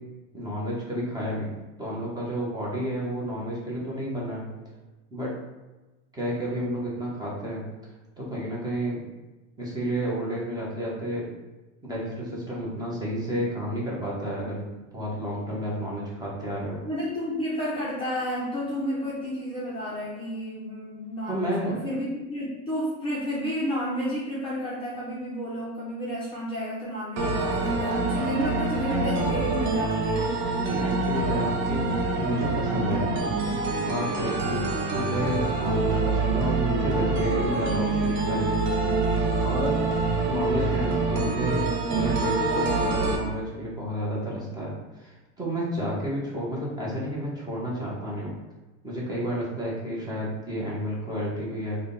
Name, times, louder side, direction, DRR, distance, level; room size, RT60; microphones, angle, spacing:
voice 1, 0.3-4.5 5.1-5.3 6.1-7.6 8.2-9.0 9.6-11.3 11.8-14.6 14.9-16.8 21.3-21.9 30.6-31.9 32.2-33.3 33.8-38.6 39.4-39.7 40.0-44.7 45.0-48.3 48.8-51.8, equal, 10° right, -5 dB, 0.9 m, -31 dB
voice 2, 16.8-30.3, equal, 15° left, -8 dB, 0.6 m, -31 dB
sound 1, 27.2-43.2, right 3 dB, 35° right, 0.6 m, -26 dB
3.6 x 2.3 x 3.8 m, 1.1 s
supercardioid pair, 140°, 36 cm